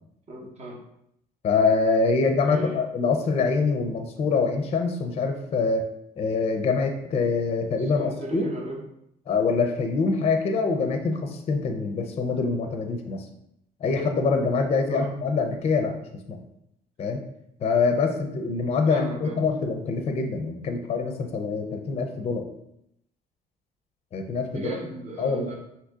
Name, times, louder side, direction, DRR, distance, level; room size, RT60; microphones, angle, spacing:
voice 1, 0.3-0.8 2.2-2.8 7.8-8.8 14.8-15.1 18.9-19.4 24.5-25.6, right 2 dB, 40° right, 0 dB, 0.8 m, -35 dB
voice 2, 1.4-5.8 6.2-8.5 9.3-13.2 13.8-15.9 16.3-16.4 17.0-17.2 17.6-22.4 24.1-24.7 25.2-25.5, left 4 dB, 35° left, 5 dB, 0.5 m, -25 dB
2.7 x 2.7 x 3.5 m, 0.77 s
cardioid pair, 110°, 17 cm